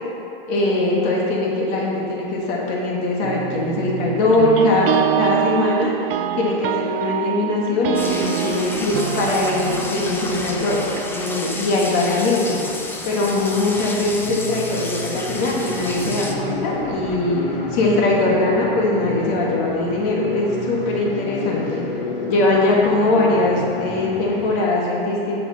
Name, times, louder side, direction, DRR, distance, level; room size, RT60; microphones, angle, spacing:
voice 1, 0.5-5.9 6.4-10.8 11.1-12.6 13.1-17.4 17.7-21.8 22.3-25.4, left 2 dB, 45° left, -3 dB, 2.0 m, -21 dB
sound 1, 3.2-11.6, right 13 dB, 75° right, 0.5 m, -26 dB
sound 2, 7.9-16.3, left 2 dB, 10° left, 0.6 m, -31 dB
sound 3, 13.2-24.6, left 2 dB, 75° left, 2.1 m, -31 dB
10.5 x 6.7 x 4.4 m, 3.0 s
hypercardioid pair, 135°, 29 cm